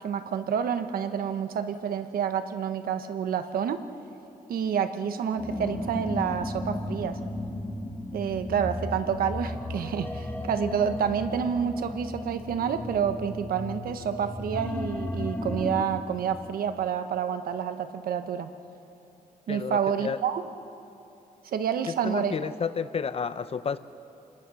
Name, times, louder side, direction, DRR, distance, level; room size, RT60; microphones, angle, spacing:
voice 1, 0.0-3.8 4.5-7.2 8.1-18.5 19.5-20.4 21.4-22.4, right 8 dB, 85° right, 9 dB, 1.2 m, -29 dB
sound 1, 5.4-15.8, left 1 dB, 15° left, 2.0 m, -34 dB
voice 2, 19.5-20.2 21.9-23.8, left 6 dB, 40° left, 13 dB, 0.7 m, -31 dB
28.5 x 21.5 x 6.3 m, 2.9 s
cardioid pair, 110°, 15 cm